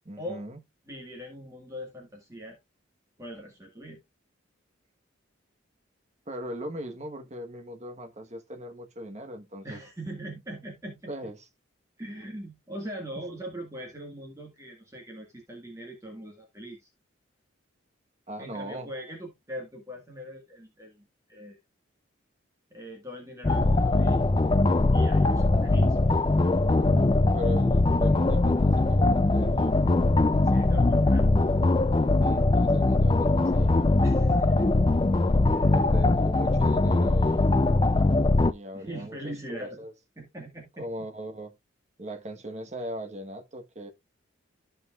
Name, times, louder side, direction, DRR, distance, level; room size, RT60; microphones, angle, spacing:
voice 1, 0.0-0.6 6.3-9.8 11.1-11.4 18.3-18.9 27.3-29.9 32.2-33.8 35.7-37.5 38.5-39.9 40.8-41.5 42.0-43.9, equal, 35° right, 1.3 m, -39 dB
voice 2, 0.9-2.6 3.2-4.0 9.6-11.1 12.0-16.9 18.4-21.6 22.7-24.2 24.9-26.0 30.4-31.5 34.0-34.7 35.5-35.7 38.7-39.8 40.2-40.9, equal, 15° right, 1.7 m, -41 dB
sound 1, 23.4-38.5, left 2 dB, 25° left, 0.4 m, -22 dB
13.5 x 5.3 x 2.4 m
head